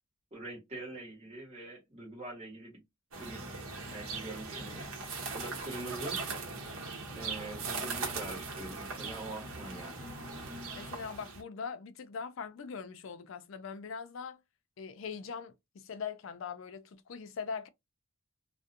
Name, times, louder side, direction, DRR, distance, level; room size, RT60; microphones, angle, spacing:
voice 1, 0.3-2.8 3.1-3.4 3.9-4.8 5.3-6.2 7.2-10.1, right 2 dB, 30° right, 1.2 m, -44 dB
sound 1, 3.1-11.4, right 4 dB, 70° right, 0.8 m, -39 dB
voice 2, 10.8-14.4 14.8-17.7, left 6 dB, 60° left, 0.4 m, -41 dB
2.5 x 2.1 x 2.6 m
head